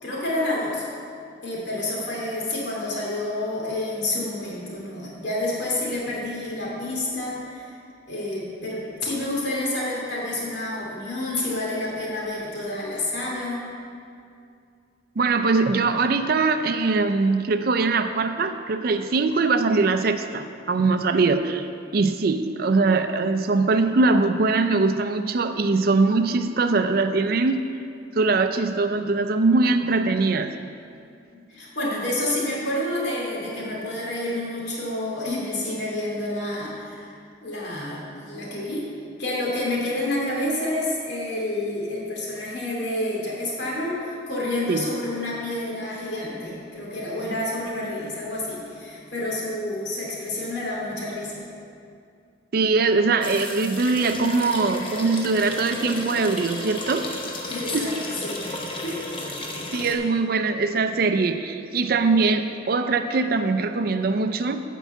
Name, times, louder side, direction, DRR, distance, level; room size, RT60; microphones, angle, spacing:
voice 1, 0.0-0.8 1.4-7.8 8.1-13.7 31.3-37.1 37.4-38.9 39.2-51.5 57.5-57.9 58.2-58.5 58.8-59.0, left 1 dB, 65° left, -5 dB, 2.4 m, -29 dB
voice 2, 15.2-21.7 21.9-27.6 28.2-30.6 44.7-44.9 52.5-57.1 57.7-57.8 59.7-64.6, right 3 dB, 50° right, 8 dB, 0.4 m, -22 dB
sound 1, 53.2-60.0, left 2 dB, 30° left, 0.9 m, -33 dB
9.2 x 4.6 x 7.3 m, 2.4 s
head